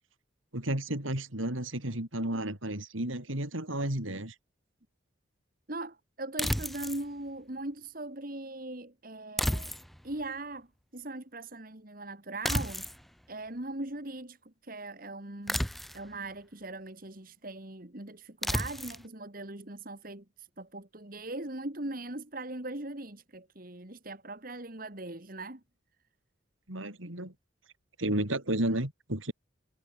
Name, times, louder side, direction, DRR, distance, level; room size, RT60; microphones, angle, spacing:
voice 1, 0.5-4.3 26.7-27.3 28.0-29.3, right 1 dB, 80° right, 4.9 m, -32 dB
voice 2, 5.7-9.7 10.0-10.7 10.9-12.8 13.3-15.6 15.9-25.6, right 2 dB, 45° right, 2.2 m, -40 dB
sound 1, 6.4-7.0 9.4-10.1 12.4-13.0 15.5-16.1 18.4-19.0, equal, ahead, 0.7 m, -32 dB
head